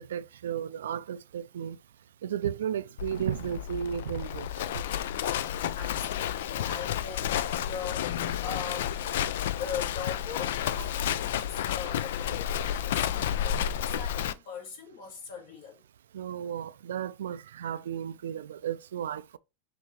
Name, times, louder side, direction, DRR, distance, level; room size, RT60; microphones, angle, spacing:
voice 1, 0.0-1.8 2.2-4.5 16.1-19.4, right 9 dB, 90° right, 0.3 m, -34 dB
Livestock farm animals working animals, 3.0-14.3, left 10 dB, 70° left, 0.3 m, -31 dB
voice 2, 5.8-9.3 9.6-15.8, left 6 dB, 55° left, 2.0 m, -41 dB
5.8 x 2.7 x 3.1 m
supercardioid pair, 140°, 0 cm